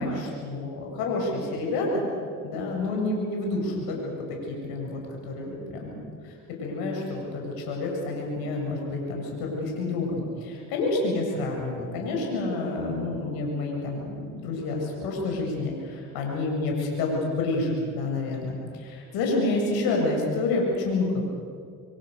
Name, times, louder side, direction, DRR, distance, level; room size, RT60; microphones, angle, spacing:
voice 1, 0.0-2.1 2.4-6.3 6.6-21.2, left 2 dB, 90° left, 0 dB, 7.3 m, -29 dB
28.5 x 24.5 x 6.8 m, 2.2 s
cardioid pair, 85°, 36 cm